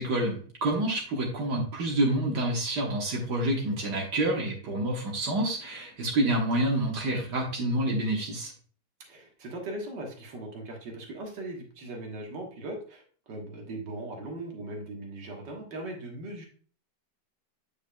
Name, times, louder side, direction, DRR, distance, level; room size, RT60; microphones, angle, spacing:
voice 1, 0.0-8.5, right 1 dB, 70° right, -2 dB, 1.8 m, -28 dB
voice 2, 9.1-16.5, right 2 dB, 90° right, 1 dB, 2.0 m, -39 dB
8.4 x 5.2 x 2.2 m, 0.43 s
omnidirectional pair, 1.8 m